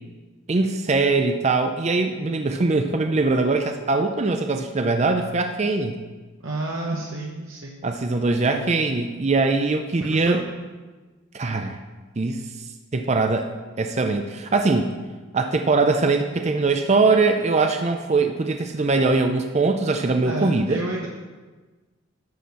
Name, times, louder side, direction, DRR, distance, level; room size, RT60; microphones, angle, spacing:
voice 1, 0.5-6.0 7.8-10.4 11.3-11.8 12.2-12.4 12.9-13.5 13.8-14.9 15.3-20.8, right 3 dB, 30° right, 5 dB, 0.5 m, -22 dB
voice 2, 6.4-7.8 10.0-10.4 20.2-21.1, right 2 dB, 75° right, -2 dB, 1.0 m, -30 dB
11.5 x 4.3 x 6.9 m, 1.3 s
head